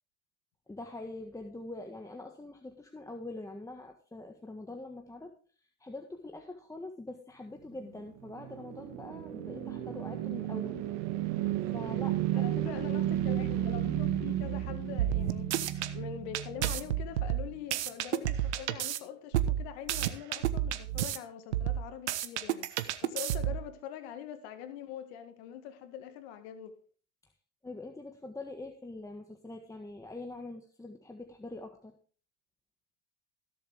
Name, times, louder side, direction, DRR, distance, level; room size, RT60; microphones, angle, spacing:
voice 1, 0.7-5.3 5.8-10.9 11.7-12.5 27.6-31.9, left 2 dB, 10° left, 1.6 m, -44 dB
sound 1, 7.9-17.2, right 12 dB, 65° right, 2.1 m, -33 dB
voice 2, 12.3-15.5 15.9-22.7 23.0-26.8, left 9 dB, 70° left, 1.9 m, -43 dB
sound 2, 15.0-15.9 16.3-19.0 19.3-21.2 21.5-23.7, right 12 dB, 85° right, 1.2 m, -31 dB
17.5 x 7.4 x 3.5 m
hypercardioid pair, 90°, 33 cm